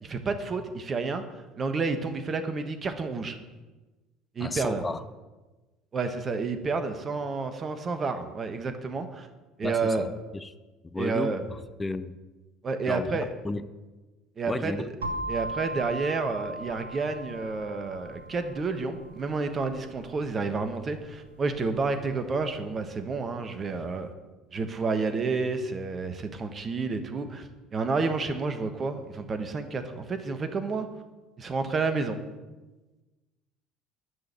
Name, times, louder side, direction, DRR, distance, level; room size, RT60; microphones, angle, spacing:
voice 1, 0.0-3.4 4.3-4.8 5.9-9.3 9.6-10.1 11.0-11.4 12.6-13.3 14.4-14.9 15.3-24.1 24.5-30.9 31.4-32.2, right 4 dB, 35° right, 8 dB, 1.3 m, -30 dB
voice 2, 4.4-5.0 9.6-10.5 10.8-12.1 12.9-13.1 13.4-13.6 14.5-14.9, left 2 dB, 20° left, 12 dB, 0.7 m, -33 dB
sound 1, 15.0-22.8, right 1 dB, 85° right, 1.2 m, -39 dB
11.0 x 6.4 x 8.8 m, 1.2 s
hypercardioid pair, 65°, 0 cm